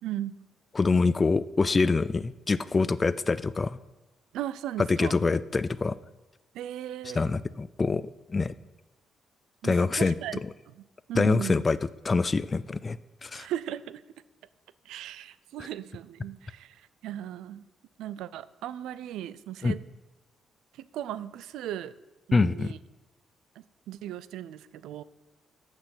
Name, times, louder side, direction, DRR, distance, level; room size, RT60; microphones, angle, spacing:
voice 1, 0.0-0.4 4.3-5.2 6.5-7.3 9.6-10.4 10.7-11.7 13.3-14.0 14.9-17.7 18.0-19.8 20.8-21.9 22.3-22.8 23.6-25.0, right 12 dB, 85° right, 16 dB, 0.4 m, -37 dB
voice 2, 0.7-3.8 4.9-6.0 7.1-8.5 9.6-10.1 11.1-11.8 12.0-13.5 19.6-19.7 22.3-22.7, left 4 dB, 30° left, 16 dB, 0.3 m, -25 dB
7.9 x 6.6 x 6.1 m, 1.1 s
cardioid pair, 90°, 0 cm